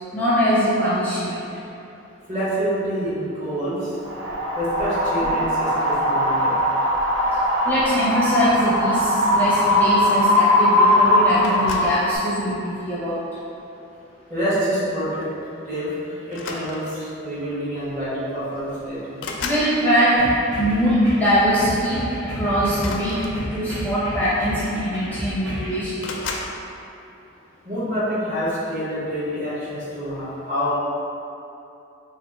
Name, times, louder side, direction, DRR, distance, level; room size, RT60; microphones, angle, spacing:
voice 1, 0.1-1.5 5.2-5.3 7.7-13.2 19.4-26.0, equal, 10° left, -10 dB, 0.5 m, -22 dB
voice 2, 2.3-3.9 4.5-6.6 14.3-15.3 15.7-19.2 27.6-30.7, equal, 35° right, -10 dB, 1.2 m, -27 dB
Wind, 4.0-12.2, left 1 dB, 85° right, 0.6 m, -20 dB
sound 1, 11.4-12.1 12.9-13.3 14.8-14.9 15.2-15.4 16.3-17.1 18.1-18.2 18.5-19.7 22.7-23.8 24.7-24.8 25.0-25.5 26.0-26.6, left 3 dB, 65° left, 0.4 m, -34 dB
sound 2, 20.2-25.8, equal, 60° right, 1.2 m, -32 dB
3.3 x 2.5 x 4.2 m, 2.7 s
head